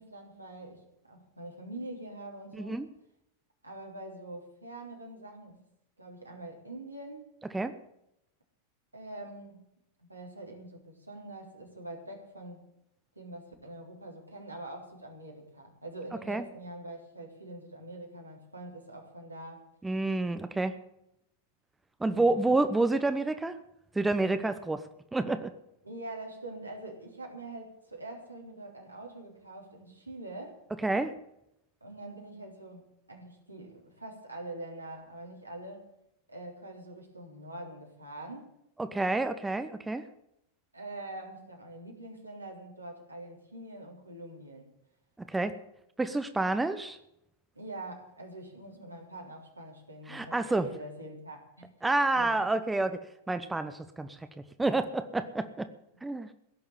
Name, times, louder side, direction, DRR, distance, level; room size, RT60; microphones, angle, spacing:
voice 1, 0.0-2.9 3.6-5.6 6.0-7.3 8.9-9.6 10.0-12.7 13.2-19.6 22.1-22.4 25.8-30.6 31.8-35.9 36.3-38.6 40.7-44.7 47.5-51.7 52.1-52.4, right 1 dB, 85° right, 0 dB, 3.6 m, -44 dB
voice 2, 19.8-20.8 22.0-23.6 23.9-24.9 25.1-25.5 30.8-31.2 38.8-40.0 45.3-45.6 46.0-47.0 50.1-50.7 51.8-54.2 54.6-55.7 56.0-56.3, right 2 dB, 10° right, 10 dB, 0.9 m, -29 dB
17.0 x 7.0 x 9.9 m, 0.80 s
figure-of-eight pair, 90°, 0 cm